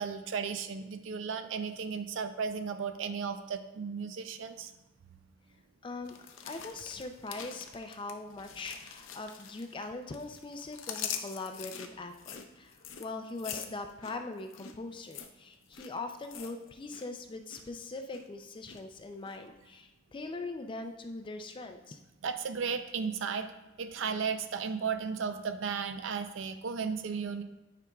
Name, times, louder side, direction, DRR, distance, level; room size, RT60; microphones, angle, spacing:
voice 1, 0.0-4.7 22.2-23.5 23.8-27.4, right 6 dB, 70° right, 9 dB, 0.4 m, -35 dB
voice 2, 5.8-6.2 6.4-22.0, left 3 dB, 25° left, 6 dB, 0.4 m, -41 dB
sound 1, 6.1-9.9 10.1-17.1 17.3-17.7 18.1-18.8 19.3-19.4, left 8 dB, 80° left, 0.6 m, -44 dB
9.9 x 5.0 x 2.3 m, 1.0 s
head